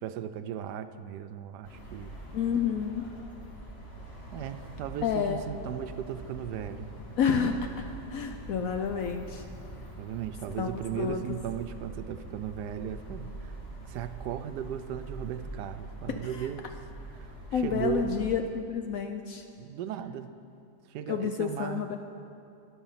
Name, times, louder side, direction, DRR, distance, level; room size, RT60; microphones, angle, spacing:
voice 1, 0.0-2.2 4.3-6.9 10.0-13.5 13.8-16.7 17.1-18.1 19.6-20.3 20.9-22.0, right 9 dB, 80° right, 10 dB, 1.1 m, -37 dB
sound 1, 1.6-18.3, right 2 dB, 35° left, 2.3 m, -44 dB
voice 2, 2.3-3.0 5.0-5.4 7.2-7.7 8.1-9.4 10.6-11.3 16.1-16.5 17.5-19.4 21.1-22.0, left 7 dB, 65° left, 6 dB, 0.9 m, -29 dB
13.0 x 10.5 x 5.7 m, 2.6 s
omnidirectional pair, 1.8 m